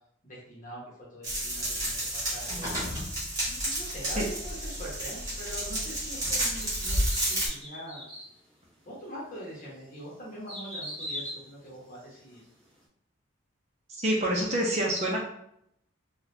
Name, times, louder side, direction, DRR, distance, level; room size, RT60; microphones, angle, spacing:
voice 1, 0.2-2.7 3.4-8.0 8.8-12.4, equal, 40° left, -5 dB, 1.1 m, -43 dB
sound 1, 1.2-7.5, right 1 dB, 15° right, 1.4 m, -31 dB
sound 2, 6.5-8.3 8.9-9.0 9.6-12.4 12.8-12.9, equal, 5° left, 1.0 m, -41 dB
voice 2, 14.0-15.2, right 1 dB, 35° right, -2 dB, 0.6 m, -26 dB
3.9 x 2.3 x 2.7 m, 0.73 s
head